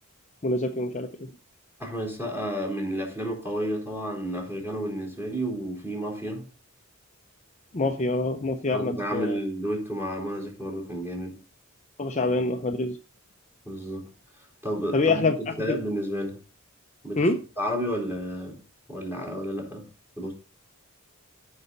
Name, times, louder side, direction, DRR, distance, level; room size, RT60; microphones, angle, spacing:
voice 1, 0.4-1.1 7.7-9.4 12.0-13.0 14.9-15.4 15.7-15.8 17.2-17.4, left 2 dB, 35° left, 0.7 m, -25 dB
voice 2, 1.8-6.5 8.7-11.4 13.6-14.1 14.6-16.4 17.0-17.3 17.6-18.6 18.9-19.9 20.2-20.3, equal, 10° right, 4.2 m, -31 dB
14.5 x 5.6 x 4.0 m
head